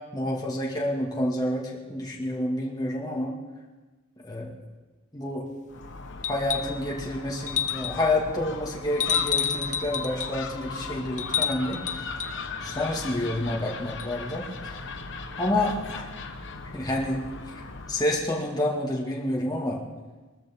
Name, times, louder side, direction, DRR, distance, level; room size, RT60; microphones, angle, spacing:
voice 1, 0.1-3.3 4.2-4.6 5.1-5.5 6.3-12.3 12.6-14.8 15.4-16.0 16.7-17.6 17.9-19.8, left 1 dB, 20° left, -3 dB, 2.1 m, -29 dB
Gull seagull, 5.7-18.1, left 4 dB, 60° left, 1.1 m, -38 dB
sound 1, 6.2-6.8 7.5-8.1 9.0-10.4 11.2-12.4 14.0-14.1, left 8 dB, 35° left, 0.5 m, -29 dB
23.0 x 13.0 x 3.7 m, 1.3 s
head